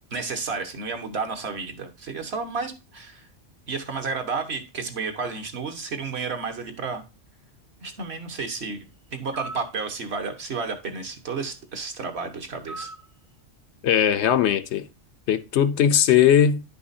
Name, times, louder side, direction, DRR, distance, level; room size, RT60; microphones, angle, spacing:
voice 1, 0.1-3.3 3.7-7.0 7.8-12.9, right 4 dB, 60° right, 1.5 m, -32 dB
sound 1, 9.3-9.7 12.7-13.1, right 2 dB, 20° right, 0.6 m, -37 dB
voice 2, 13.8-14.9 15.3-16.6, left 9 dB, 70° left, 0.9 m, -19 dB
10.5 x 5.6 x 2.7 m
omnidirectional pair, 1.2 m